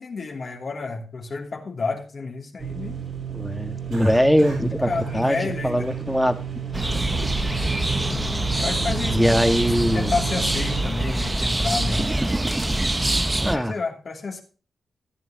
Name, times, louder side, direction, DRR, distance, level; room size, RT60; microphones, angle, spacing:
voice 1, 0.0-3.0 4.7-5.9 8.6-9.4 9.9-12.1 13.5-14.4, left 4 dB, 55° left, 2 dB, 2.8 m, -30 dB
sound 1, 2.6-10.8, right 8 dB, 55° right, 4.3 m, -33 dB
voice 2, 3.3-6.4 9.1-10.1 13.4-13.7, equal, ahead, 7 dB, 1.7 m, -21 dB
Cough, 3.9-4.7 5.0-5.2 5.8-6.2 6.7-7.4, right 2 dB, 85° right, 7.0 m, -41 dB
sound 2, 6.7-13.6, right 1 dB, 20° right, 0.9 m, -24 dB
14.5 x 9.7 x 2.9 m, 0.36 s
cardioid pair, 65°, 0 cm